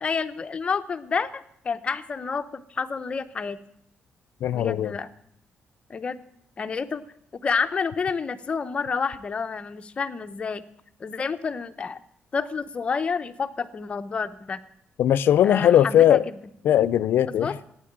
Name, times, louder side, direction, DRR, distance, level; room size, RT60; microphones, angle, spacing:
voice 1, 0.0-3.6 4.5-5.1 5.9-6.2 6.6-7.0 7.3-10.6 11.0-12.0 12.3-14.6 15.4-16.4 17.4-17.6, left 5 dB, 30° left, 0.7 m, -29 dB
voice 2, 4.4-5.0 15.0-16.2 16.6-17.6, left 11 dB, 65° left, 0.6 m, -19 dB
14.0 x 9.6 x 8.7 m
cardioid pair, 170°, 4 cm